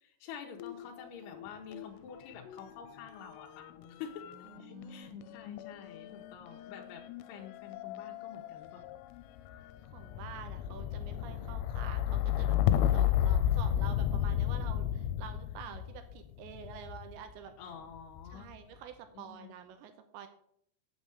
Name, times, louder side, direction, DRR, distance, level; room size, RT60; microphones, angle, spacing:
voice 1, 0.0-3.7 4.0-4.3 4.6-9.0 17.6-18.5 19.1-19.5, left 7 dB, 70° left, -1 dB, 2.7 m, -48 dB
sound 1, 0.6-1.9 2.2-17.2 18.0-18.6, left 11 dB, 90° left, 3.3 m, -33 dB
voice 2, 4.5-5.4 9.6-17.5 18.3-20.3, right 8 dB, 80° right, 8 dB, 2.7 m, -48 dB
8.4 x 7.0 x 7.7 m, 0.70 s
omnidirectional pair, 5.9 m